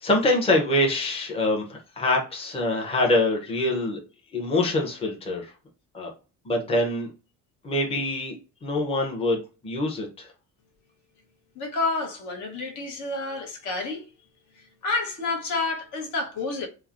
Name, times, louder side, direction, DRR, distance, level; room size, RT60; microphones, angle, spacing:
voice 1, 0.0-4.0 4.3-5.5 5.9-6.1 6.4-7.1 7.6-8.4 8.6-10.3, left 1 dB, 15° left, 0.7 m, -24 dB
voice 2, 11.6-14.0 14.8-16.7, left 3 dB, 55° left, 0.9 m, -29 dB
3.1 x 2.0 x 2.4 m
cardioid pair, 110°, 36 cm